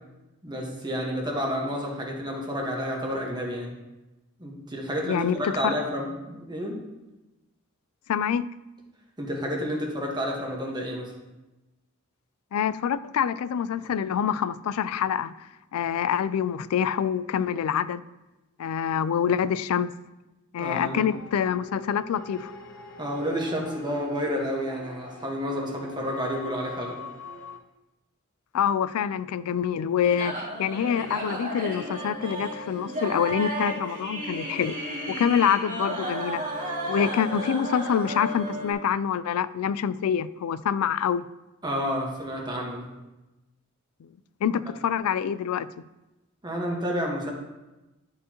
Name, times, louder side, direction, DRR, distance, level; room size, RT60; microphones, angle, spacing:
voice 1, 0.4-3.7 4.4-6.8 9.2-11.1 20.6-21.1 23.0-27.0 41.6-42.9 46.4-47.3, equal, 20° right, -1 dB, 1.3 m, -30 dB
voice 2, 5.0-5.7 8.1-8.4 12.5-15.3 15.7-18.1 18.6-19.9 20.5-22.5 28.5-34.8 35.1-36.4 36.9-41.2 44.4-45.7, left 8 dB, 90° left, 16 dB, 0.3 m, -26 dB
sound 1, 20.7-27.6, left 3 dB, 70° left, 0.7 m, -42 dB
sound 2, 30.0-38.7, right 1 dB, 40° right, 2.2 m, -33 dB
11.0 x 4.7 x 2.9 m, 1.0 s
head